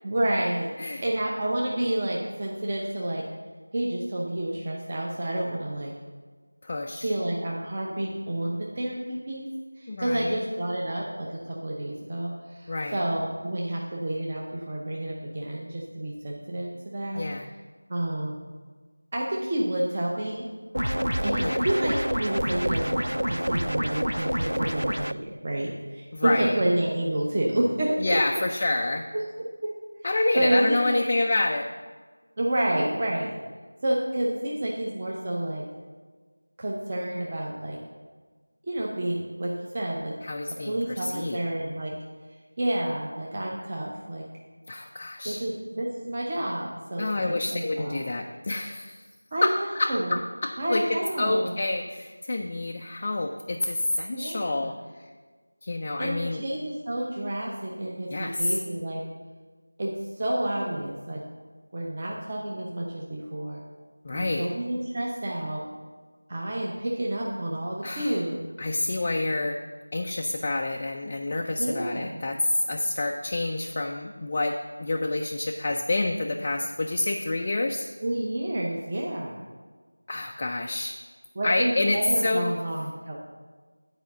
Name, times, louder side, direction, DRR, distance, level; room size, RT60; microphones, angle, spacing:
voice 1, 0.0-0.7 1.0-3.3 3.7-6.0 7.0-9.5 9.8-17.2 17.9-18.4 19.1-20.5 21.2-28.0 29.1-29.8 30.3-31.0 32.4-33.3 33.8-35.7 36.6-37.8 38.7-40.2 40.6-42.0 42.6-44.2 45.2-48.0 49.3-50.2 50.6-51.5 54.1-54.8 56.0-59.0 59.8-61.2 61.7-63.6 64.1-65.6 66.3-68.4 71.6-72.2 78.0-79.4 81.4-83.2, right 1 dB, 20° right, -3 dB, 0.6 m, -29 dB
voice 2, 6.6-7.1 9.9-10.4 12.7-13.0 17.2-17.5 21.4-21.6 26.1-26.6 28.0-29.1 30.0-31.7 40.2-41.4 44.7-45.4 47.0-49.0 49.4-50.8 51.2-54.8 55.6-56.4 58.1-58.6 64.0-64.5 67.8-68.2 68.6-69.6 69.9-77.9 80.1-81.0 81.4-82.5, left 2 dB, 20° left, 1 dB, 0.3 m, -28 dB
sound 1, 20.7-25.1, equal, 85° right, 0.3 m, -27 dB
9.1 x 4.8 x 6.7 m, 1.4 s
figure-of-eight pair, 175°, 0 cm